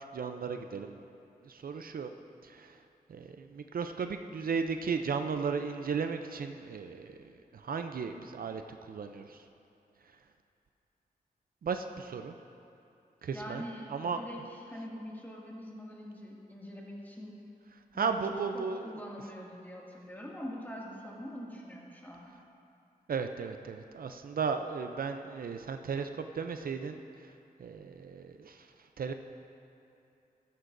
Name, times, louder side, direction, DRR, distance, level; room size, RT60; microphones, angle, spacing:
voice 1, 0.1-1.0 1.4-2.1 2.4-2.8 3.1-7.2 7.5-9.4 11.6-12.3 13.2-13.6 13.9-14.2 17.9-18.9 23.1-27.3 27.6-28.7 29.0-29.1, right 5 dB, 65° right, 7 dB, 0.5 m, -35 dB
voice 2, 13.3-17.4 17.9-18.2 18.5-22.3, equal, 10° left, -4 dB, 2.1 m, -44 dB
14.5 x 12.5 x 2.6 m, 2.7 s
wide cardioid pair, 80°, 16 cm